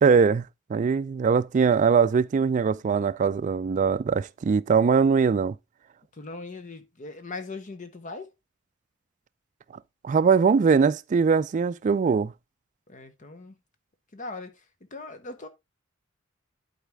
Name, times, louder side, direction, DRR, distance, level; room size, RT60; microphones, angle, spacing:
voice 1, 0.0-5.6 10.0-12.3, right 5 dB, 40° right, 0.3 m, -21 dB
voice 2, 6.1-8.3 12.9-13.6 14.1-15.5, left 3 dB, 40° left, 0.9 m, -40 dB
11.5 x 4.1 x 3.4 m
head